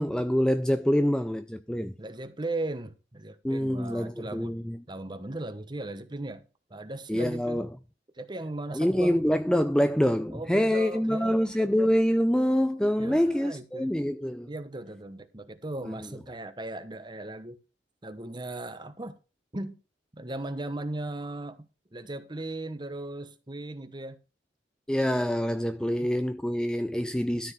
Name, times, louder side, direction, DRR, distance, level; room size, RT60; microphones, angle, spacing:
voice 1, 0.0-1.9 3.4-4.8 7.1-7.7 8.7-14.5 15.8-16.0 24.9-27.5, equal, 5° left, 0.4 m, -26 dB
voice 2, 2.0-4.6 4.9-7.7 8.1-9.3 10.3-11.4 13.0-13.9 14.5-17.6 18.0-19.2 19.5-19.8 20.1-24.2 25.8-26.1 27.0-27.4, right 2 dB, 25° right, 1.1 m, -37 dB
13.0 x 4.5 x 5.8 m
head